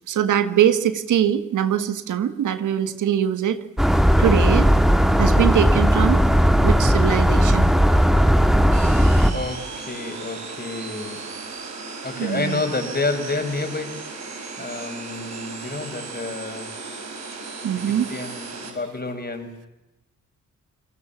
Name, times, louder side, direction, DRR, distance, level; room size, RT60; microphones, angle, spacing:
voice 1, 0.1-3.6 4.2-4.7 5.2-6.2 6.6-7.7 12.2-12.6 17.6-18.1, right 9 dB, 85° right, 11 dB, 1.7 m, -22 dB
sound 1, 3.8-9.3, equal, ahead, 2.5 m, -17 dB
sound 2, 8.7-18.7, right 4 dB, 65° right, 7.6 m, -36 dB
voice 2, 9.3-11.2 12.0-14.1 14.6-16.7 17.7-19.7, left 3 dB, 35° left, 6 dB, 6.6 m, -29 dB
28.5 x 20.0 x 7.3 m, 0.96 s
cardioid pair, 60°, 30 cm